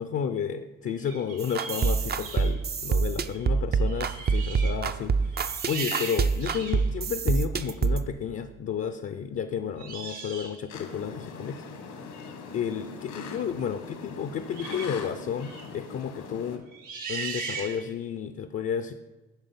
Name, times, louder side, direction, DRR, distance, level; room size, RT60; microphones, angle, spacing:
voice 1, 0.0-11.6 12.5-16.6 17.1-18.9, left 7 dB, 45° left, 9 dB, 0.6 m, -32 dB
sound 1, 1.0-2.6 3.3-3.5 3.7-4.8 5.2-6.9 7.6-7.8 9.8-10.6 14.5-15.0 15.4-15.7 16.7-18.0, right 4 dB, 85° right, 1.5 m, -38 dB
sound 2, 1.4-8.1, right 5 dB, 35° right, 0.5 m, -26 dB
sound 3, 10.7-16.6, left 4 dB, 80° left, 1.5 m, -41 dB
9.0 x 5.1 x 5.7 m, 1.1 s
cardioid pair, 90°, 30 cm